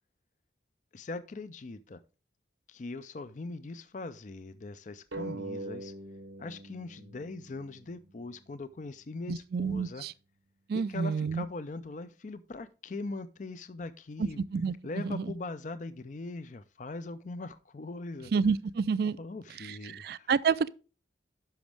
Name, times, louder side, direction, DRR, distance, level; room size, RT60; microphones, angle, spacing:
voice 1, 0.9-2.0 2.7-5.9 6.4-10.0 10.7-14.4 14.8-18.3 19.2-20.3, left 3 dB, 40° left, 0.4 m, -41 dB
sound 1, 5.1-8.3, right 2 dB, 80° right, 1.0 m, -42 dB
voice 2, 9.3-10.1 10.7-11.5 14.2-15.3 18.3-19.2 19.6-20.7, right 5 dB, 55° right, 0.3 m, -29 dB
10.5 x 6.1 x 3.3 m
head